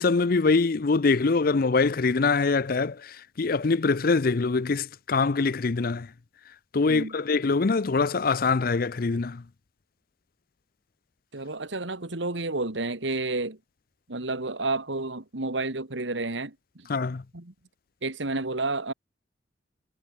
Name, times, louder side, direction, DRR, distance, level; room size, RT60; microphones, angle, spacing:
voice 1, 0.0-6.1 6.7-9.4 16.9-17.2, left 4 dB, 50° left, 0.6 m, -24 dB
voice 2, 11.3-13.6 14.1-16.9 17.3-17.5 18.0-18.9, right 2 dB, 75° right, 2.2 m, -30 dB
head